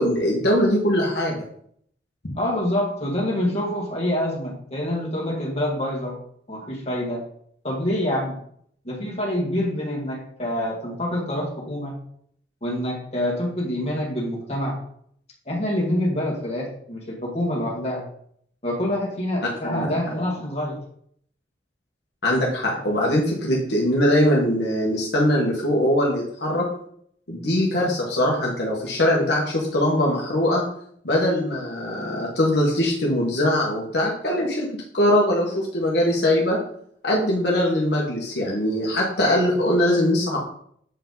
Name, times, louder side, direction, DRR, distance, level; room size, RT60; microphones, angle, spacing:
voice 1, 0.0-1.4 19.8-19.9 22.2-26.7 27.3-30.6 31.0-36.6 37.0-40.4, left 1 dB, 70° left, -3 dB, 1.5 m, -21 dB
voice 2, 2.4-6.2 6.5-7.2 7.6-8.4 8.8-12.0 12.6-14.8 15.5-18.0 18.6-20.8 22.7-22.8, left 1 dB, 35° left, -3 dB, 2.0 m, -26 dB
8.0 x 4.7 x 4.0 m, 0.66 s
head